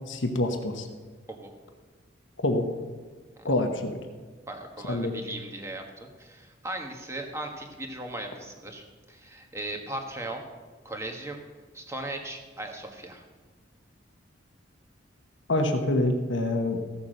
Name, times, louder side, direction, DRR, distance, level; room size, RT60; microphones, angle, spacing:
voice 1, 0.1-0.9 2.4-2.7 3.4-3.9 4.8-5.1 15.5-16.8, left 1 dB, 70° left, 5 dB, 1.2 m, -26 dB
voice 2, 4.5-10.4 10.8-11.4 11.7-13.2, right 1 dB, 15° right, 3 dB, 1.4 m, -38 dB
15.5 x 7.1 x 6.5 m, 1.4 s
head